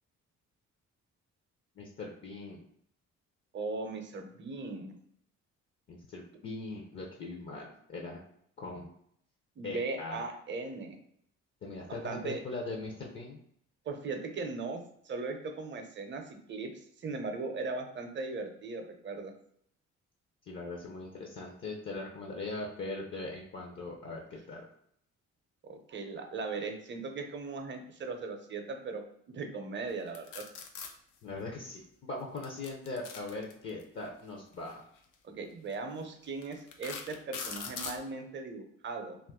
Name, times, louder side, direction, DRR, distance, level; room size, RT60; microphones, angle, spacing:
voice 1, 1.8-2.6 5.9-8.2 8.6-8.9 9.6-10.2 11.6-13.4 20.5-24.7 31.2-34.8, left 2 dB, 40° left, 0 dB, 0.6 m, -40 dB
voice 2, 3.5-4.9 9.6-11.0 11.9-12.4 13.9-14.8 15.0-16.7 17.0-19.3 25.6-30.4 35.2-39.2, right 3 dB, 40° right, 5 dB, 0.6 m, -38 dB
sound 1, 30.1-30.9 32.4-33.8 35.0-35.1 35.7-35.8 36.4-38.0, left 6 dB, 85° left, 0.5 m, -41 dB
2.6 x 2.4 x 3.5 m, 0.69 s
cardioid pair, 90°, 30 cm